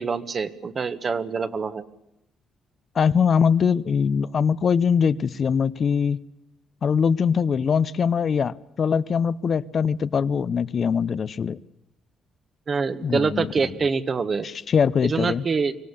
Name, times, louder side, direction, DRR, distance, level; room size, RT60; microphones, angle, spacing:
voice 1, 0.0-1.9 12.7-14.5 15.0-15.8, right 5 dB, 40° right, 11 dB, 1.5 m, -25 dB
voice 2, 2.9-6.2 6.8-11.6 13.0-13.5 14.4-15.4, left 6 dB, 50° left, 14 dB, 0.8 m, -22 dB
24.5 x 17.0 x 10.0 m, 0.86 s
cardioid pair, 90°, 0 cm